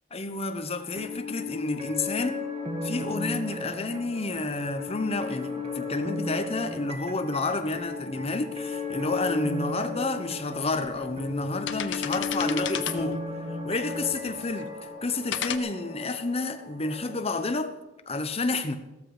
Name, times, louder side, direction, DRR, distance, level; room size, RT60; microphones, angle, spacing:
voice 1, 0.1-2.4 2.8-13.2 13.6-17.7 18.1-18.8, left 3 dB, 30° left, 1.1 m, -30 dB
sound 1, 0.8-17.3, left 3 dB, 30° right, 2.0 m, -35 dB
sound 2, 10.0-10.1 10.8-11.1 11.5-13.2 13.9-14.6 15.3-15.6, left 9 dB, 65° left, 0.9 m, -34 dB
15.5 x 13.5 x 5.1 m
head